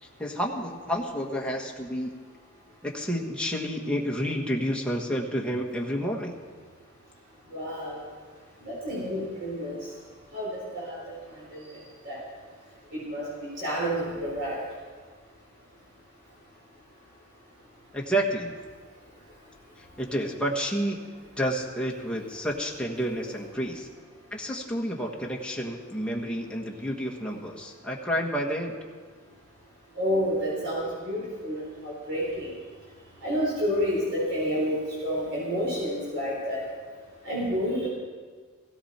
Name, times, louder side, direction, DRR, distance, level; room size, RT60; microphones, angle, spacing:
voice 1, 0.0-2.2 2.8-6.3 17.9-18.5 19.8-21.0 21.4-23.9 24.3-28.7, equal, 5° left, -2 dB, 1.5 m, -30 dB
voice 2, 7.5-8.0 8.6-9.7 10.3-11.2 11.5-12.2 12.9-14.6 30.0-32.5 33.2-36.7 37.2-37.9, equal, 65° right, -5 dB, 4.1 m, -29 dB
17.0 x 16.5 x 4.4 m, 1.5 s
head